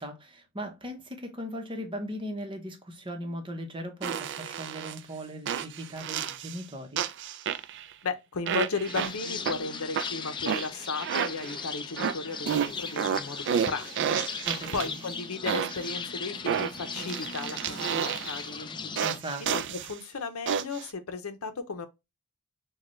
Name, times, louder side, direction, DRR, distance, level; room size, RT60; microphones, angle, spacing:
voice 1, 0.0-7.0 14.5-15.0 19.0-19.5, equal, 25° right, 0.9 m, -38 dB
sound 1, 4.0-5.0 5.5-6.6 7.0-7.9 8.5-9.6 10.0-11.6 12.0-15.1 15.5-15.9 16.5-18.5 19.0-19.9 20.5-20.9, right 8 dB, 55° right, 0.4 m, -31 dB
voice 2, 8.0-14.2 14.7-18.9 19.4-21.9, left 4 dB, 75° left, 0.8 m, -35 dB
sound 2, 8.9-19.2, left 5 dB, 20° left, 0.4 m, -38 dB
6.4 x 2.3 x 3.1 m
head